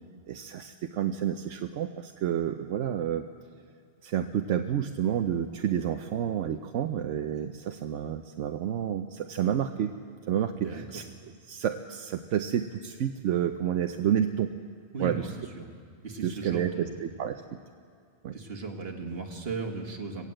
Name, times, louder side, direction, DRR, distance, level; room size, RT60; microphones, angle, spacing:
voice 1, 0.3-3.3 4.0-9.9 10.3-11.0 11.5-14.5 15.0-15.3 16.2-17.4 18.2-18.4, right 9 dB, 80° right, 6 dB, 1.0 m, -29 dB
voice 2, 10.6-11.0 14.9-15.7 16.0-17.1 18.3-20.3, right 4 dB, 55° right, 2 dB, 2.0 m, -37 dB
19.0 x 17.5 x 7.8 m, 2.3 s
omnidirectional pair, 1.2 m